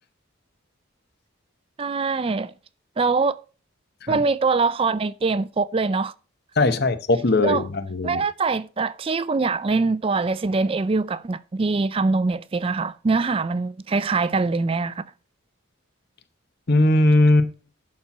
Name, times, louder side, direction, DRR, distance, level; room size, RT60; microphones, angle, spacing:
voice 1, 1.8-2.5 3.0-3.4 4.1-6.1 7.4-7.6 8.0-15.0, right 4 dB, 25° right, 0.3 m, -23 dB
voice 2, 6.6-8.2 16.7-17.5, left 2 dB, 50° left, 0.8 m, -19 dB
11.0 x 4.3 x 5.8 m
head